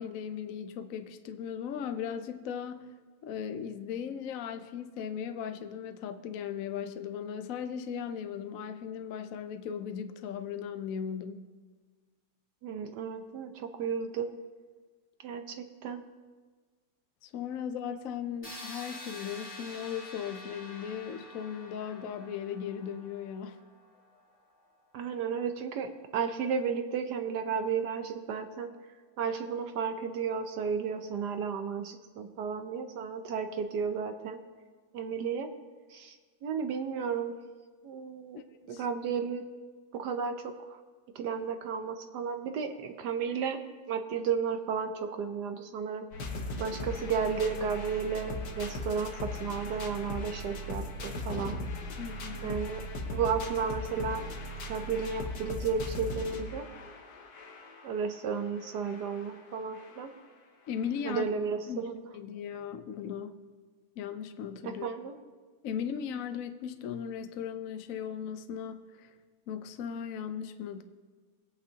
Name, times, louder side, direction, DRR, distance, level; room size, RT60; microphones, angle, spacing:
voice 1, 0.0-2.9 3.2-11.4 17.2-23.6 38.6-38.8 52.0-52.6 60.7-61.3 61.7-63.4 64.0-64.9 65.6-69.1 69.5-70.8, left 8 dB, 70° left, 9 dB, 0.8 m, -37 dB
voice 2, 12.6-14.3 15.2-16.0 24.9-28.7 29.2-34.4 34.9-35.5 35.9-36.1 36.4-37.3 37.8-38.4 38.7-39.4 39.9-40.8 41.2-43.6 43.9-46.1 46.6-51.6 52.4-52.8 53.1-54.3 54.7-56.6 57.8-60.1 61.0-62.0 64.6-65.2, right 6 dB, 65° right, 7 dB, 1.2 m, -33 dB
sound 1, 18.4-24.2, left 2 dB, 5° left, 2.5 m, -47 dB
sound 2, 46.1-60.2 60.8-60.9 61.1-61.2, left 1 dB, 55° left, 1.5 m, -39 dB
20.5 x 8.7 x 2.8 m, 1.5 s
omnidirectional pair, 2.1 m